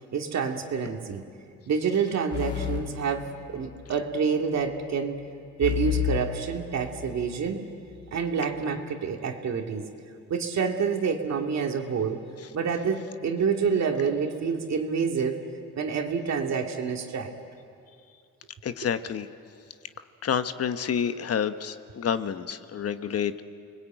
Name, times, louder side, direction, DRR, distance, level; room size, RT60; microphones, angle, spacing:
voice 1, 0.1-1.2 1.7-5.2 5.6-7.6 8.1-9.8 10.3-12.2 12.5-15.4 15.8-17.3, right 6 dB, 60° right, 4 dB, 2.4 m, -27 dB
sound 1, 2.3-3.9 5.6-7.4, left 11 dB, 75° left, 3.3 m, -31 dB
voice 2, 18.6-19.3 20.2-23.4, left 8 dB, 50° left, 10 dB, 1.1 m, -29 dB
29.0 x 21.0 x 9.0 m, 2.4 s
cardioid pair, 90°, 30 cm